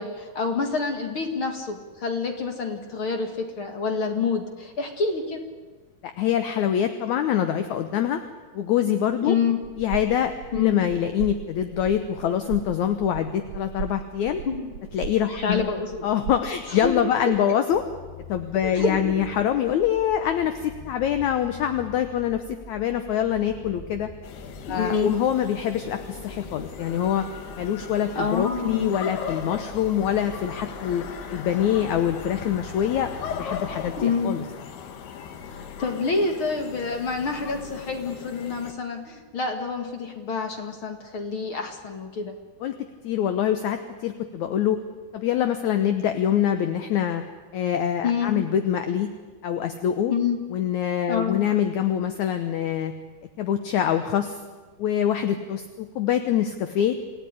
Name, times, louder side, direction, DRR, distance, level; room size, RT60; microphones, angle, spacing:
voice 1, 0.0-5.4 9.2-9.6 10.5-10.8 14.5-14.7 15.4-16.1 16.7-17.0 17.3-17.4 18.6-19.0 24.7-25.1 28.2-29.2 34.0-34.3 35.5-42.3 48.0-48.4 50.1-50.4 51.1-51.4, left 5 dB, 45° left, 5 dB, 2.1 m, -27 dB
voice 2, 6.0-8.2 8.5-9.4 9.8-14.4 14.9-15.6 16.0-17.8 18.3-24.1 24.7-27.2 27.6-31.0 31.3-34.4 42.6-42.7 43.0-44.8 45.1-47.2 47.5-49.1 49.4-50.1 50.5-52.9 53.4-54.4 54.8-57.0, left 9 dB, 70° left, 8 dB, 1.9 m, -25 dB
sound 1, 9.6-17.4, right 9 dB, 70° right, 1.6 m, -38 dB
sound 2, 17.7-34.1, left 1 dB, 10° right, 1.2 m, -45 dB
sound 3, 24.2-38.7, left 7 dB, 85° left, 3.7 m, -38 dB
27.5 x 16.0 x 9.9 m, 1.4 s
omnidirectional pair, 4.5 m